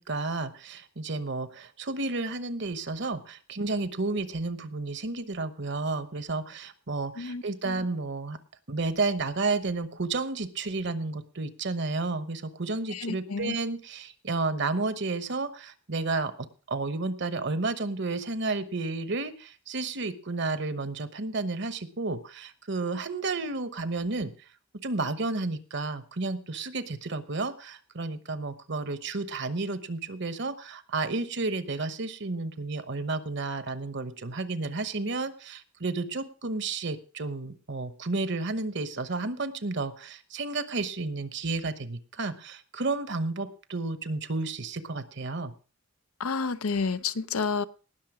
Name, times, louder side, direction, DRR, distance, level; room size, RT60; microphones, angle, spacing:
voice 1, 0.0-8.4 8.7-24.3 24.8-45.5, right 3 dB, 55° right, 1.0 m, -32 dB
voice 2, 7.2-7.8 12.9-13.6 46.2-47.6, left 5 dB, 80° left, 0.7 m, -30 dB
18.5 x 6.6 x 4.9 m
head